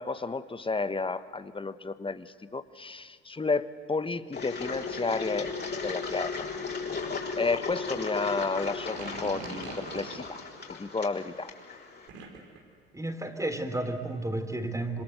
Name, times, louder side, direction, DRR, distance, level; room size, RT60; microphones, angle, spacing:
voice 1, 0.0-5.6 5.8-6.3 7.4-10.4 10.7-11.5, left 3 dB, 15° left, 13 dB, 1.4 m, -31 dB
Engine, 4.3-12.1, left 4 dB, 30° left, 5.6 m, -36 dB
sound 1, 8.8-10.3 12.1-12.6, right 4 dB, 80° right, 5.0 m, -41 dB
voice 2, 12.9-15.0, right 1 dB, 10° right, 7 dB, 3.4 m, -32 dB
27.0 x 26.0 x 8.1 m, 2.1 s
hypercardioid pair, 65°, 32 cm